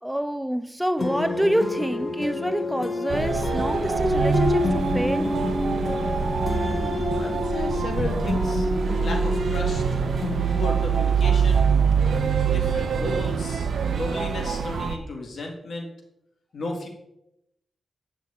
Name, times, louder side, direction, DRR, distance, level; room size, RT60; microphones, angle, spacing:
voice 1, 0.0-5.4, equal, 5° right, 0.4 m, -27 dB
sound 1, 1.0-12.2, left 2 dB, 40° left, 1.2 m, -28 dB
sound 2, 3.1-15.0, right 6 dB, 70° right, 0.6 m, -24 dB
voice 2, 6.4-8.7 9.0-9.8 10.5-11.7 12.5-15.9 16.5-16.9, left 2 dB, 60° left, 1.8 m, -34 dB
8.4 x 6.0 x 4.2 m
wide cardioid pair, 100°, 0 cm